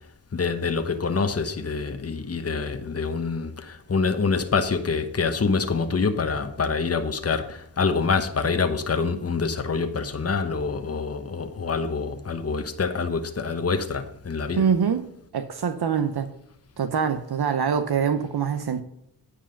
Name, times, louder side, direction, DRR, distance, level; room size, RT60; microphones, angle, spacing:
voice 1, 0.3-14.6, left 4 dB, 35° left, 1.0 m, -26 dB
voice 2, 14.6-15.1 15.3-16.3 16.8-18.8, right 7 dB, 65° right, 0.8 m, -24 dB
9.8 x 5.1 x 5.2 m
cardioid pair, 45°, 41 cm